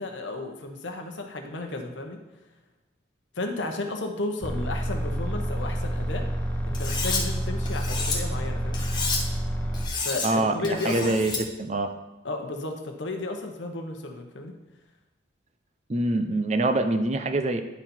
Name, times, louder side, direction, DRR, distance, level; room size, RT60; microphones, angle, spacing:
voice 1, 0.0-2.2 3.3-6.3 6.6-8.8 10.0-11.2 12.2-14.5, left 2 dB, 75° left, 3 dB, 1.0 m, -33 dB
sound 1, 4.4-9.9, equal, 5° left, 0.7 m, -29 dB
Cutlery silverware, 6.7-7.2 7.7-8.2 8.7-9.2 9.7-10.3 10.6-11.4, left 4 dB, 20° left, 1.2 m, -30 dB
voice 2, 10.2-11.9 15.9-17.6, right 2 dB, 35° right, 8 dB, 0.5 m, -25 dB
11.0 x 4.1 x 4.4 m, 1.0 s
head